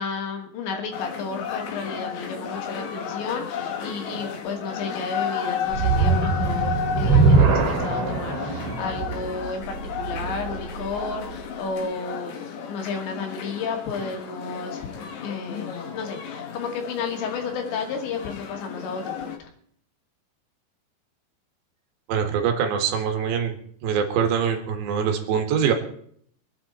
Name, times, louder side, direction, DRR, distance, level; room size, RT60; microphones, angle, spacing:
voice 1, 0.0-15.0 15.2-19.5, left 4 dB, 85° left, 3 dB, 4.6 m, -32 dB
sound 1, 0.9-19.4, left 7 dB, 55° left, 2.2 m, -33 dB
sound 2, 5.7-11.0, right 4 dB, 50° right, 4.5 m, -22 dB
voice 2, 22.1-23.5 23.8-25.7, right 7 dB, 80° right, 5 dB, 4.1 m, -23 dB
24.5 x 9.6 x 4.3 m, 0.63 s
omnidirectional pair, 5.0 m